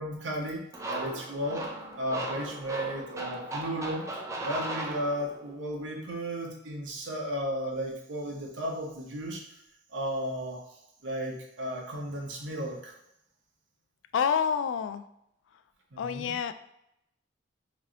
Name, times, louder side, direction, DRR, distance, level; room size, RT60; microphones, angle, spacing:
voice 1, 0.0-4.1 4.4-9.4 9.9-10.6 11.0-12.9 15.9-16.3, equal, 80° right, 0 dB, 0.9 m, -34 dB
sound 1, 0.7-5.5, right 1 dB, 15° right, 0.5 m, -37 dB
voice 2, 14.1-15.0 16.0-16.5, left 7 dB, 90° left, 11 dB, 0.3 m, -28 dB
3.1 x 3.0 x 3.7 m, 0.80 s
head